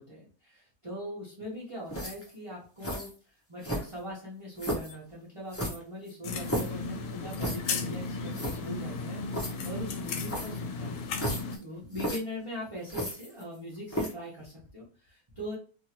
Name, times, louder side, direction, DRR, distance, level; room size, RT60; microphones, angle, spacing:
voice 1, 0.0-3.1 3.5-15.6, left 1 dB, 25° right, -7 dB, 0.9 m, -41 dB
sound 1, 1.9-2.3 2.8-3.1 3.6-4.1 4.6-4.9 5.5-6.8 7.4-7.7 8.1-8.2 8.3-8.6 9.3-9.5 10.2-10.6 11.1-11.6 11.9-12.2 12.9-13.6 13.9-14.2, equal, 15° left, 0.5 m, -33 dB
sound 2, 6.2-11.6, left 4 dB, 80° left, 1.1 m, -35 dB
2.7 x 2.7 x 2.9 m, 0.38 s
omnidirectional pair, 1.6 m